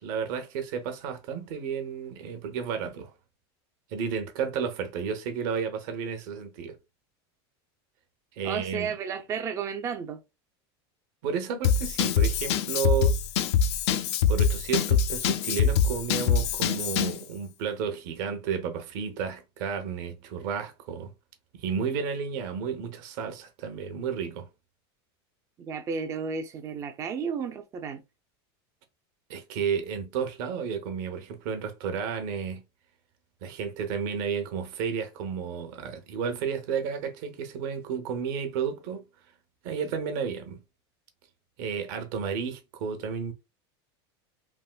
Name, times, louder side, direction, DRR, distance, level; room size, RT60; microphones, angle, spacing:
voice 1, 0.0-3.1 3.9-6.8 8.4-8.9 11.2-13.2 14.3-21.1 21.5-24.5 29.3-32.6 33.4-39.0 39.6-40.6 41.6-43.3, right 6 dB, 55° right, 0.8 m, -32 dB
voice 2, 8.4-10.2 25.6-28.0, right 6 dB, 20° right, 0.4 m, -33 dB
Drum kit / Drum, 11.6-17.2, left 6 dB, 90° left, 0.4 m, -24 dB
3.5 x 2.4 x 2.2 m
supercardioid pair, 160°, 14 cm